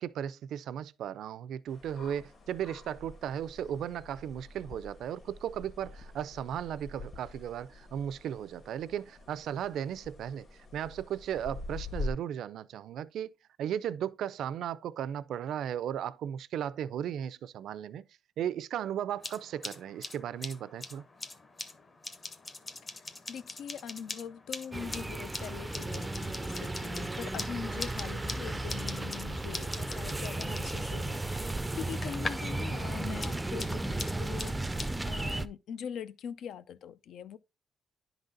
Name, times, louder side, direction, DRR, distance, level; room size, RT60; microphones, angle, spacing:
voice 1, 0.0-10.5 10.7-13.3 13.6-18.1 18.4-21.0 32.4-32.5, right 9 dB, 75° right, 0.4 m, -36 dB
sound 1, 1.7-12.1, left 3 dB, 45° left, 1.7 m, -45 dB
sound 2, 19.1-32.6 32.8-34.9, left 3 dB, 30° left, 0.9 m, -43 dB
voice 2, 23.3-37.4, left 8 dB, 75° left, 0.4 m, -42 dB
sound 3, 24.7-35.5, right 2 dB, 10° right, 0.4 m, -35 dB
10.5 x 4.0 x 3.8 m
cardioid pair, 130°, 0 cm